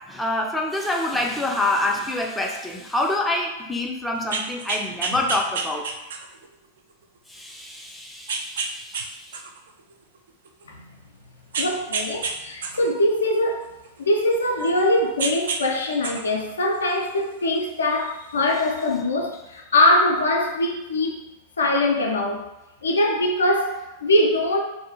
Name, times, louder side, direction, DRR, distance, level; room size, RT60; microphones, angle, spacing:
voice 1, 0.1-5.9 7.3-9.4, left 2 dB, 5° left, -1 dB, 0.4 m, -26 dB
sound 1, 4.2-6.4 7.0-7.1 8.3-9.1 9.3-10.6 11.5-12.3 12.6-14.8 15.2-15.6 15.9-17.3 18.4-18.5, right 4 dB, 65° right, 0.3 m, -29 dB
voice 2, 11.6-13.7 14.0-21.1 21.6-22.5 22.8-24.6, left 1 dB, 75° left, 1 dB, 0.4 m, -22 dB
2.6 x 2.3 x 2.7 m, 0.97 s
figure-of-eight pair, 95°, 0 cm